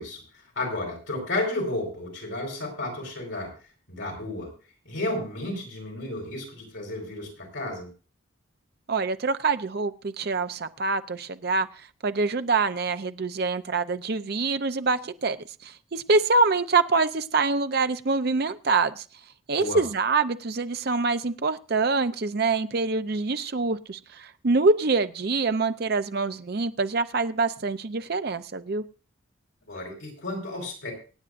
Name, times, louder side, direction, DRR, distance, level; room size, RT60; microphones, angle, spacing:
voice 1, 0.0-3.5 3.9-4.5 4.8-7.9 19.6-19.8 29.7-30.9, left 2 dB, 70° left, 4.8 m, -32 dB
voice 2, 8.9-15.4 15.6-19.0 19.5-28.8, right 3 dB, 50° right, 0.6 m, -25 dB
25.0 x 8.9 x 2.5 m
head